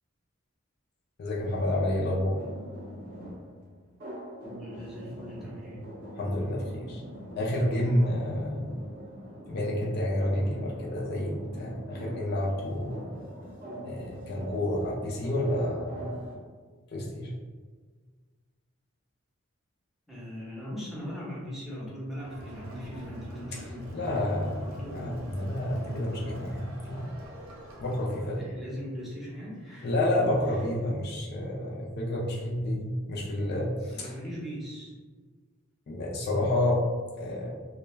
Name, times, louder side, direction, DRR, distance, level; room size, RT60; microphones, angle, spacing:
voice 1, 1.2-2.4 6.2-7.0 7.4-8.7 9.5-13.1 13.8-16.2 16.9-17.3 23.5-27.1 27.8-28.5 29.8-34.1 35.9-36.8 37.2-37.5, left 1 dB, 50° left, -3 dB, 0.4 m, -29 dB
sound 1, 1.4-16.4, right 1 dB, 40° right, 0.6 m, -43 dB
voice 2, 4.4-5.9 20.1-25.3 28.3-29.9 33.9-34.9, equal, ahead, -7 dB, 0.6 m, -40 dB
Crowd, 22.2-28.5, right 1 dB, 80° right, 0.5 m, -44 dB
2.3 x 2.1 x 3.1 m, 1.4 s
head